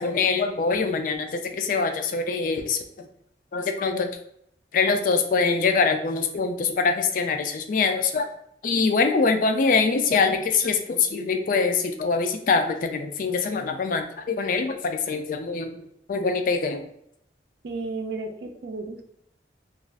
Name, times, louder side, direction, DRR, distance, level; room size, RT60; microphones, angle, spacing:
voice 1, 0.0-3.1 3.5-4.2 4.7-8.3 8.6-15.8 16.1-16.9, left 4 dB, 50° left, 6 dB, 0.3 m, -24 dB
voice 2, 17.6-19.0, right 3 dB, 70° right, 5 dB, 0.4 m, -33 dB
2.4 x 2.4 x 3.3 m, 0.73 s
head